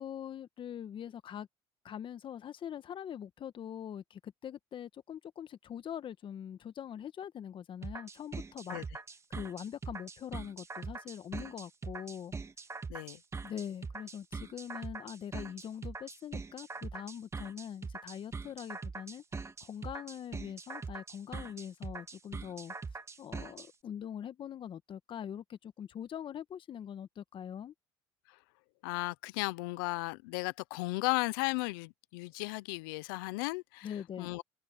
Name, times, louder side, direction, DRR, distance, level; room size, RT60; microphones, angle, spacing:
voice 1, 0.0-1.5 1.8-8.8 9.3-12.3 13.4-19.2 19.6-22.7 23.2-27.7 33.8-34.3, left 9 dB, 45° left, 1.5 m, -43 dB
sound 1, 7.8-23.7, right 4 dB, 25° right, 1.7 m, -42 dB
voice 2, 28.8-33.9 34.2-34.4, left 25 dB, 80° left, 0.7 m, -35 dB
open air
hypercardioid pair, 75°, 11 cm